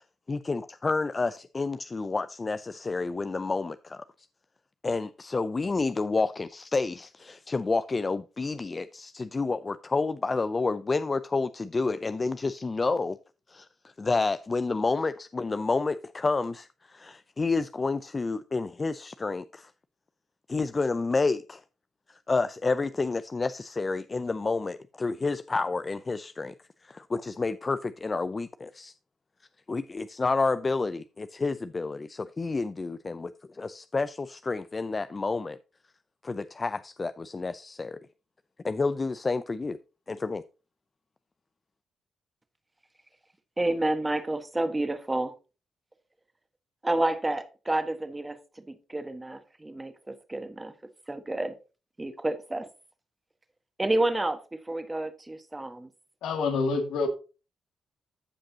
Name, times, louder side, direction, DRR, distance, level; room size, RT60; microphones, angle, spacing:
voice 1, 0.3-4.0 4.8-13.2 13.5-13.7 14.0-19.7 20.5-21.6 22.1-26.5 26.8-28.9 29.7-35.6 36.2-38.0 38.6-39.8 40.1-40.4, left 3 dB, 30° left, 0.4 m, -29 dB
voice 2, 43.6-45.3 46.8-48.4 48.7-50.7 51.1-51.5 52.0-52.7 53.8-55.9, right 2 dB, 15° right, 1.4 m, -29 dB
voice 3, 56.2-57.1, left 4 dB, 90° left, 1.9 m, -27 dB
14.5 x 5.2 x 2.8 m
cardioid pair, 95°, 0 cm